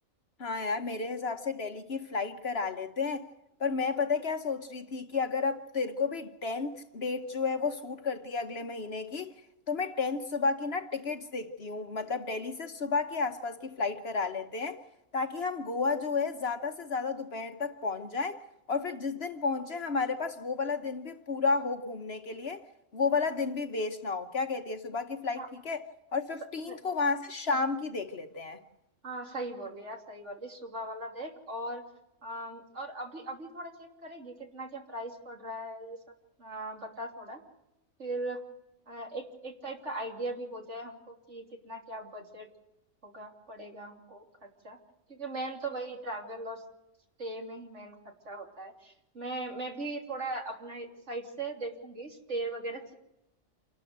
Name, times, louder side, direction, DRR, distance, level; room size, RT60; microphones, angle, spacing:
voice 1, 0.4-3.3 3.6-9.3 9.7-14.8 15.1-18.4 18.7-22.6 22.9-25.8 26.1-28.6, left 4 dB, 50° left, 1.2 m, -32 dB
voice 2, 29.0-31.8 32.2-36.0 36.4-37.4 38.0-38.4 38.9-42.5 43.0-44.8 45.1-46.6 47.2-52.9, right 2 dB, 60° right, 3.5 m, -39 dB
28.0 x 12.5 x 7.9 m
omnidirectional pair, 1.4 m